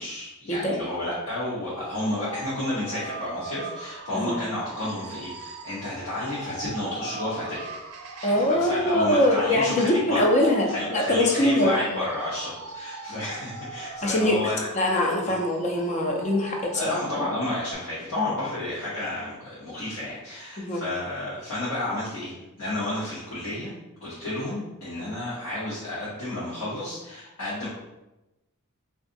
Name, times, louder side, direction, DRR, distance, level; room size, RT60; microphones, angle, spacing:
voice 1, 0.0-7.7 8.2-10.3 10.7-14.7 15.2-15.3 16.7-23.7 24.0-27.7, left 1 dB, 85° left, -9 dB, 1.0 m, -31 dB
sound 1, 1.6-17.7, right 3 dB, 85° right, 0.4 m, -39 dB
voice 2, 8.2-11.8 14.0-14.4 14.7-16.9 20.6-20.8, left 1 dB, 30° left, 1 dB, 0.5 m, -23 dB
3.7 x 2.4 x 2.5 m, 0.99 s
head